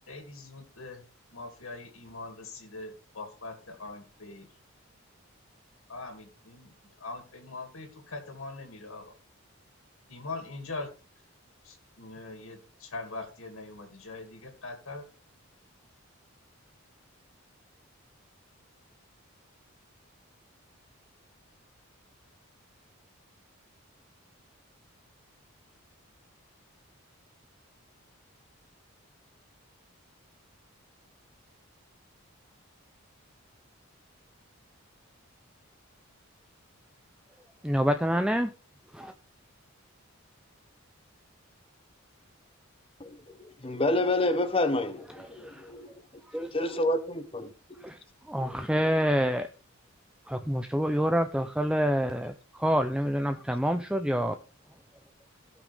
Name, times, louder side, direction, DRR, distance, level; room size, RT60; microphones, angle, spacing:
voice 1, 0.1-4.5 5.9-6.7 7.0-9.2 10.1-10.9 11.6-15.0, left 3 dB, 70° left, 2.5 m, -42 dB
voice 2, 37.6-38.5 38.9-39.1 45.4-45.7 46.3-46.5 47.8-48.0 48.3-49.5 50.3-54.3, equal, 5° right, 0.5 m, -27 dB
voice 3, 43.0-45.9 46.5-47.5 48.4-48.6, left 2 dB, 25° left, 1.1 m, -29 dB
17.5 x 6.1 x 3.5 m
head